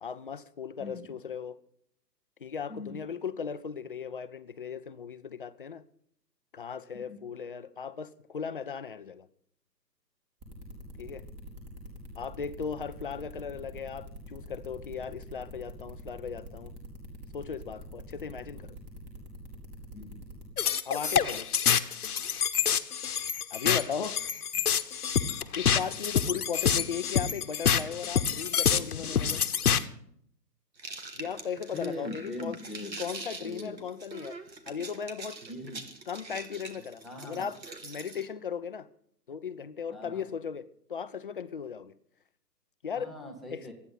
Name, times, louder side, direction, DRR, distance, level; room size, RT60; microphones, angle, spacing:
voice 1, 0.0-1.6 2.4-5.8 6.5-9.3 11.0-11.2 12.2-16.7 17.3-18.8 20.9-21.5 23.5-24.3 25.5-29.4 31.1-32.6 33.0-34.4 34.7-35.4 36.1-38.9 39.3-41.9 42.8-43.1 43.5-43.7, left 7 dB, 35° left, 0.6 m, -37 dB
voice 2, 0.8-1.1 2.7-3.0 6.9-7.2 19.9-20.2 31.7-33.0 33.4-33.8 35.5-35.8 37.0-37.5 39.9-40.3 42.9-43.7, left 2 dB, ahead, 0.7 m, -41 dB
sound 1, 10.4-20.4, equal, 20° right, 3.2 m, -45 dB
sound 2, 20.6-29.8, left 8 dB, 60° left, 1.1 m, -27 dB
sound 3, 30.8-38.3, right 3 dB, 85° right, 2.5 m, -44 dB
27.0 x 9.6 x 4.0 m
figure-of-eight pair, 140°, 50 cm